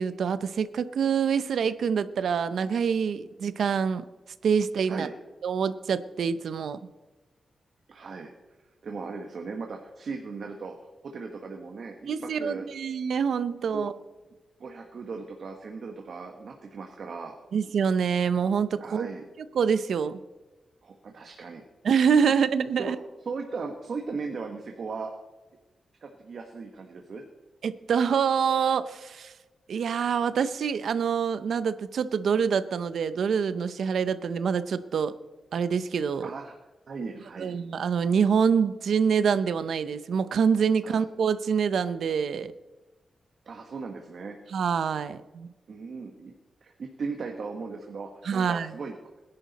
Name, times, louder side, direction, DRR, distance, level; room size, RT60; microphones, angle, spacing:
voice 1, 0.0-4.0 4.4-5.1 5.4-6.8 12.1-13.9 17.5-19.1 19.5-20.2 21.8-23.0 27.6-29.3 29.7-35.1 35.5-36.3 37.4-42.5 44.5-45.5 48.2-48.7, right 6 dB, 75° right, 13 dB, 0.6 m, -26 dB
voice 2, 7.9-8.3 8.8-10.7 11.0-12.7 13.7-13.9 14.6-17.4 18.8-19.2 20.8-21.6 22.3-22.4 22.8-22.9 23.2-25.1 26.0-27.2 36.2-36.5 36.9-37.6 40.8-41.0 43.4-44.4 45.7-46.3 46.6-48.9, right 4 dB, 55° right, 3 dB, 1.3 m, -37 dB
20.5 x 11.0 x 4.1 m, 1.1 s
wide cardioid pair, 140°, 0 cm